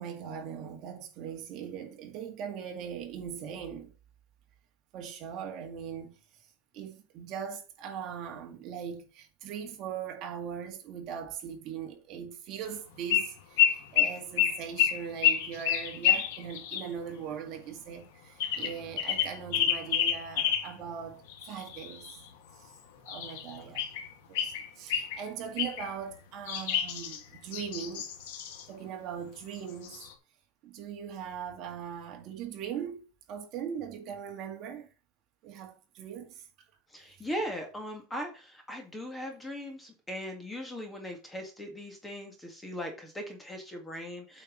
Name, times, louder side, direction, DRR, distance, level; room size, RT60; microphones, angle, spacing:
voice 1, 0.0-3.9 4.9-6.1 6.7-22.2 22.5-22.8 23.0-28.1 28.7-30.0 30.6-34.9 35.4-36.5, right 8 dB, 40° right, 2.1 m, -40 dB
sound 1, 13.1-13.3 13.6-16.9 18.4-20.7 21.3-22.3 23.1-24.1 24.3-25.2 25.6-25.9 26.5-28.6 29.5-29.6 29.8-30.1, left 9 dB, 85° left, 2.0 m, -29 dB
voice 2, 36.9-44.4, equal, 10° left, 2.0 m, -39 dB
8.7 x 4.7 x 6.1 m
cardioid pair, 170°, 0 cm